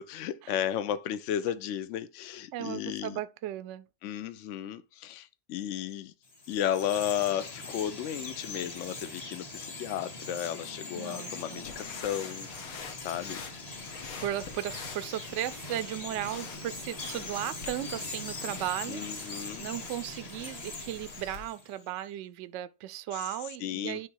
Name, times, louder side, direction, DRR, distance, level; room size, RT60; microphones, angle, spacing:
voice 1, 0.0-3.2 4.0-6.1 6.5-13.4 18.9-19.7 23.1-23.2 23.6-24.1, left 10 dB, 65° left, 0.9 m, -34 dB
voice 2, 2.5-3.9 11.0-11.7 14.2-24.1, right 13 dB, 65° right, 0.8 m, -36 dB
Chirp tweet, 6.3-21.9, left 2 dB, 30° left, 1.0 m, -42 dB
sound 1, 11.6-21.5, left 6 dB, 80° left, 1.5 m, -46 dB
9.4 x 3.2 x 4.6 m
omnidirectional pair, 1.5 m